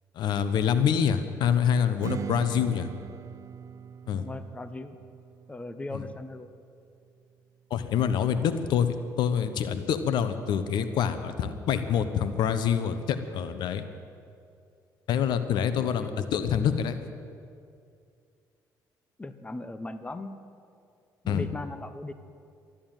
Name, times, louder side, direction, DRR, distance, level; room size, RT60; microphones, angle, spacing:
voice 1, 0.1-2.9 4.1-4.2 5.9-6.0 7.7-8.9 9.2-13.8 15.1-17.0 21.3-21.5, left 8 dB, 75° left, 11 dB, 1.0 m, -26 dB
Strum, 2.0-7.2, right 7 dB, 45° right, 0.4 m, -40 dB
voice 2, 4.1-5.0 5.5-6.5 15.9-16.3 19.2-20.3 21.2-22.1, left 2 dB, 15° left, 11 dB, 0.9 m, -38 dB
13.5 x 11.5 x 9.0 m, 2.3 s
cardioid pair, 85°, 8 cm